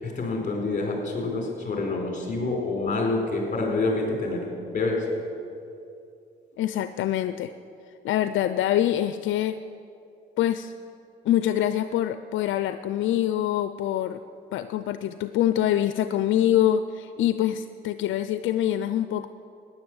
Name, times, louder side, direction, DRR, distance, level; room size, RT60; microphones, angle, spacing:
voice 1, 0.0-5.1, left 3 dB, 40° left, 1 dB, 4.4 m, -27 dB
voice 2, 6.6-7.5 8.0-9.6 10.4-10.7 11.2-14.2 14.5-19.3, left 11 dB, 75° left, 11 dB, 0.5 m, -25 dB
15.0 x 10.0 x 7.9 m, 2.6 s
cardioid pair, 90°, 20 cm